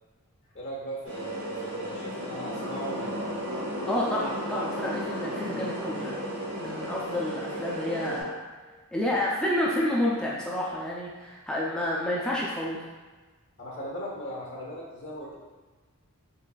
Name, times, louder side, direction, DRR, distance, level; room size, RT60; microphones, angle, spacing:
voice 1, 0.4-3.4 13.6-15.4, equal, 55° left, -3 dB, 0.8 m, -39 dB
sound 1, 1.0-8.2, equal, 70° right, 1.1 m, -34 dB
voice 2, 3.9-6.2 6.6-8.4 8.9-12.8, left 1 dB, 5° left, -5 dB, 0.4 m, -29 dB
3.9 x 3.2 x 2.3 m, 1.3 s
head